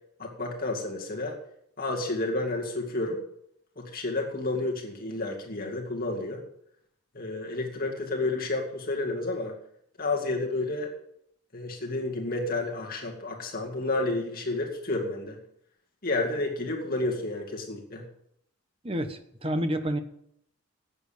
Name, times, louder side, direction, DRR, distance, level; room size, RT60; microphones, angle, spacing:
voice 1, 0.2-1.4 1.8-3.2 3.8-6.4 7.1-9.5 10.0-10.9 11.5-15.4 16.0-18.0, left 2 dB, 40° left, 0 dB, 2.1 m, -30 dB
voice 2, 18.8-20.0, equal, 25° right, 8 dB, 1.0 m, -29 dB
13.5 x 8.8 x 6.8 m, 0.72 s
head